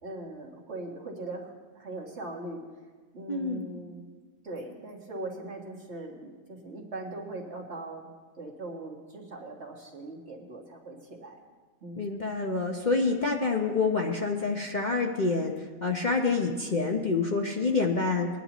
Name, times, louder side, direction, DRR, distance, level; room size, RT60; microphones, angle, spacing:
voice 1, 0.0-2.6 3.1-4.1 4.4-11.4 11.8-12.1, right 2 dB, 50° right, -1 dB, 1.9 m, -40 dB
voice 2, 3.3-3.7 12.0-18.3, left 4 dB, 40° left, 1 dB, 0.8 m, -27 dB
20.5 x 10.5 x 3.0 m, 1.4 s
omnidirectional pair, 1.5 m